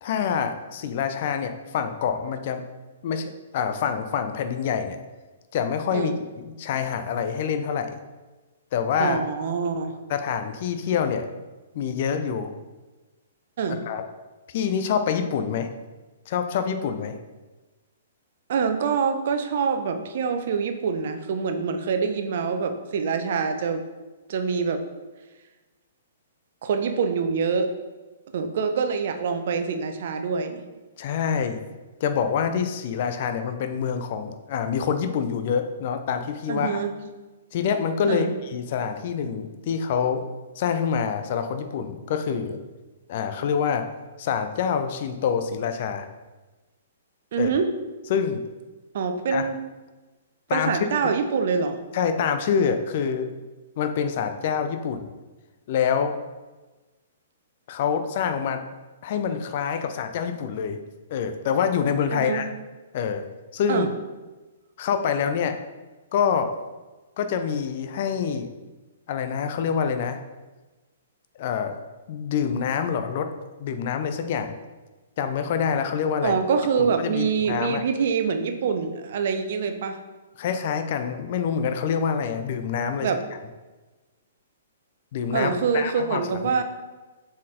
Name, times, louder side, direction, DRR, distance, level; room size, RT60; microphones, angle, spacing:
voice 1, 0.0-2.6 3.0-5.0 5.5-7.9 8.7-9.2 10.1-11.3 11.7-12.5 13.7-14.0 14.5-15.7 16.3-17.1 31.0-31.6 32.0-36.8 37.5-40.2 40.6-42.6 43.1-43.9 44.2-46.1 47.4-47.5 48.1-48.4 49.3-49.5 50.5-50.7 51.9-53.3 53.8-55.1 55.7-56.1 57.7-58.6 59.0-60.8 61.1-62.5 62.9-63.2 63.5-63.9 64.8-65.6 66.1-66.5 67.2-68.5 69.1-70.2 71.4-71.8 72.1-73.3 73.6-74.5 75.2-76.3 76.8-77.8 80.4-83.1 85.1-86.6, left 7 dB, 45° left, 8 dB, 0.5 m, -26 dB
voice 2, 9.0-10.0 13.6-13.8 18.5-23.8 24.3-24.8 26.6-27.7 28.3-30.6 36.5-36.9 38.1-38.3 47.3-47.7 48.9-49.6 50.5-51.8 62.1-62.4 63.7-63.9 76.2-80.0 83.0-83.2 85.3-86.6, right 5 dB, 50° right, 7 dB, 0.7 m, -25 dB
7.3 x 4.3 x 3.8 m, 1.2 s
figure-of-eight pair, 115°, 0 cm